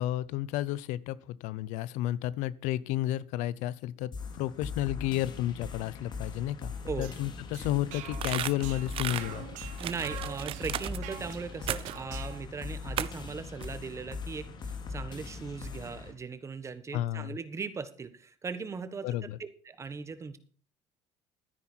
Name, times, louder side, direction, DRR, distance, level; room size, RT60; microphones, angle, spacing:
voice 1, 0.0-6.7 7.0-9.5 16.9-17.4 19.0-19.4, left 14 dB, 85° left, 20 dB, 0.7 m, -32 dB
sound 1, 4.1-16.1, left 4 dB, 40° left, 2.5 m, -40 dB
sound 2, 6.7-12.5, right 12 dB, 85° right, 1.6 m, -46 dB
sound 3, 8.1-9.2 9.8-11.0 11.7-12.0 13.0-13.3 13.6-13.7, right 12 dB, 50° right, 0.7 m, -35 dB
voice 2, 9.8-19.1 19.4-20.4, right 5 dB, 25° right, 12 dB, 1.4 m, -39 dB
13.0 x 10.0 x 4.5 m, 0.42 s
cardioid pair, 135°, 12 cm